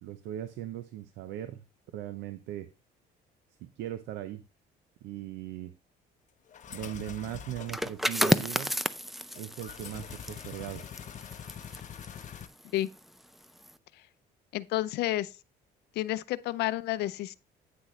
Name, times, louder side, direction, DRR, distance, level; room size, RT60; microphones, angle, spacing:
voice 1, 0.0-1.6 1.9-2.7 3.6-4.4 5.0-5.7 6.7-8.7 9.3-10.8, right 12 dB, 90° right, 0.7 m, -39 dB
sound 1, 6.5-7.9 9.3-12.5, left 8 dB, 45° left, 0.9 m, -44 dB
sound 2, 7.6-13.1 13.4-13.7, equal, ahead, 0.4 m, -32 dB
voice 2, 14.5-15.3 16.0-17.3, left 15 dB, 80° left, 0.6 m, -30 dB
9.4 x 6.3 x 3.2 m
cardioid pair, 110°, 17 cm